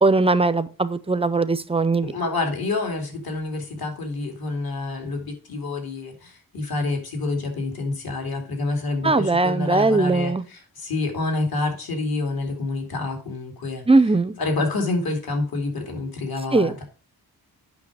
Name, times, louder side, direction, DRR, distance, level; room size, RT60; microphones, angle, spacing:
voice 1, 0.0-2.1 9.0-10.4 13.9-14.3 16.5-16.7, right 3 dB, 15° right, 14 dB, 0.5 m, -19 dB
voice 2, 2.0-13.8 14.4-16.8, left 3 dB, 70° left, 4 dB, 2.5 m, -28 dB
8.4 x 6.1 x 4.7 m, 0.37 s
wide cardioid pair, 170°, 38 cm